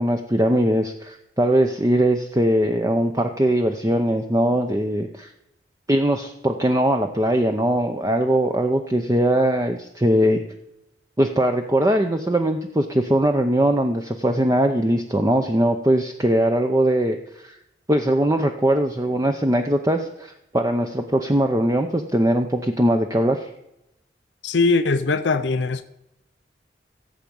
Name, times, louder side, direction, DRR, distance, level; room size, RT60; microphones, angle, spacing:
voice 1, 0.0-5.3 5.9-10.4 11.2-17.6 17.9-23.5, right 1 dB, 20° right, 5 dB, 0.6 m, -21 dB
voice 2, 24.4-25.8, left 3 dB, 80° left, 10 dB, 0.6 m, -20 dB
16.5 x 7.5 x 5.4 m, 0.85 s
head